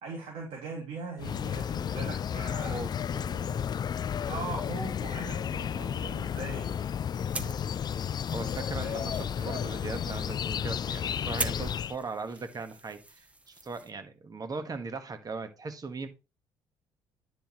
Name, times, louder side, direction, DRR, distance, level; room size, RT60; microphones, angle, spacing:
voice 1, 0.0-2.8 3.9-6.7 8.8-9.0, right 4 dB, 65° right, 2.8 m, -40 dB
sound 1, 1.2-11.9, left 8 dB, 35° left, 0.4 m, -32 dB
voice 2, 2.5-3.8 8.3-16.1, right 3 dB, 35° right, 1.6 m, -39 dB
sound 2, 7.1-13.9, right 2 dB, 10° right, 1.1 m, -42 dB
10.0 x 5.8 x 3.1 m
hypercardioid pair, 55°, 12 cm